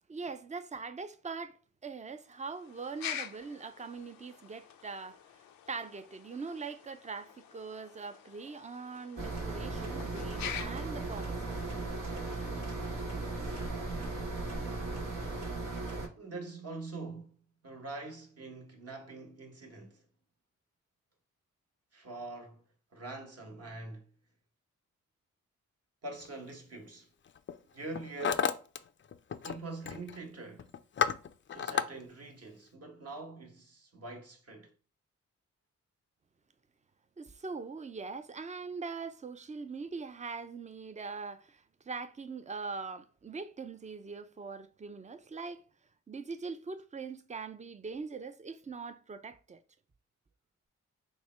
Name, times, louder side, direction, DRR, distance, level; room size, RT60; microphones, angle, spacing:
voice 1, 0.1-1.6 1.8-5.2 5.7-11.8 37.2-45.6 46.1-49.6, right 4 dB, 20° right, 0.5 m, -42 dB
sound 1, 2.2-13.8, left 9 dB, 85° left, 0.5 m, -47 dB
sound 2, 9.2-16.1, right 2 dB, 70° right, 1.1 m, -37 dB
voice 2, 16.2-17.4 17.6-20.0 21.9-22.6 22.9-24.1 26.0-27.1 27.7-28.6 29.4-30.7 31.5-34.7, right 3 dB, 45° right, 1.2 m, -44 dB
Hammer, 26.2-26.5 27.3-27.6 27.8-28.8 29.0-29.6 29.8-30.2 30.6-31.9, left 7 dB, 35° left, 0.4 m, -32 dB
3.4 x 2.1 x 4.3 m
supercardioid pair, 40°, 33 cm